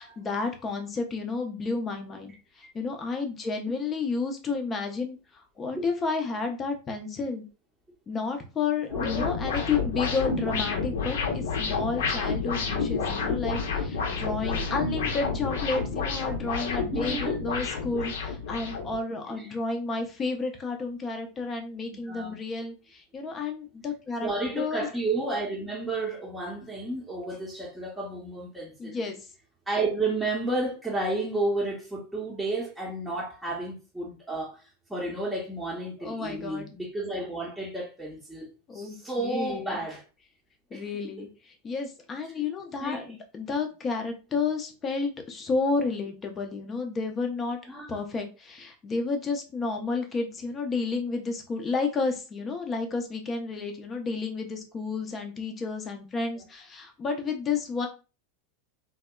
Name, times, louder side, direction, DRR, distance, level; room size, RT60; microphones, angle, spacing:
voice 1, 0.0-7.4 8.1-17.2 17.4-24.3 24.5-24.9 28.8-29.2 36.0-36.7 38.7-39.8 40.7-41.3 41.6-47.6 47.9-57.9, left 4 dB, 25° left, 0.6 m, -31 dB
sound 1, 8.9-19.0, left 5 dB, 65° left, 0.7 m, -29 dB
voice 2, 8.9-9.3 14.2-14.7 16.9-17.4 19.3-19.5 21.9-22.4 24.2-29.0 29.7-40.0 40.7-41.2 42.8-43.1 47.6-47.9, right 2 dB, 5° right, 0.8 m, -32 dB
2.7 x 2.2 x 2.2 m
figure-of-eight pair, 85°, 0 cm